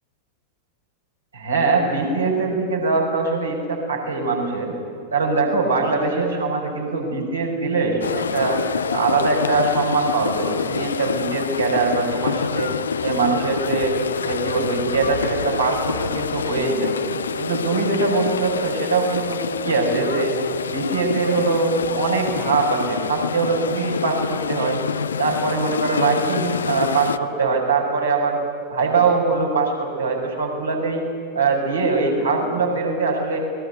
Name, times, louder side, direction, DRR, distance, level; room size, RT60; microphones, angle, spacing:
voice 1, 1.3-4.7 5.1-8.6 8.9-12.7 13.0-14.0 14.2-16.9 17.4-20.3 20.7-24.8 25.2-28.4 28.7-31.0 31.3-33.4, right 4 dB, 75° right, -1 dB, 6.2 m, -22 dB
sound 1, 8.0-27.2, left 6 dB, 70° left, 0.7 m, -27 dB
30.0 x 21.0 x 8.3 m, 2.4 s
figure-of-eight pair, 90°, 0 cm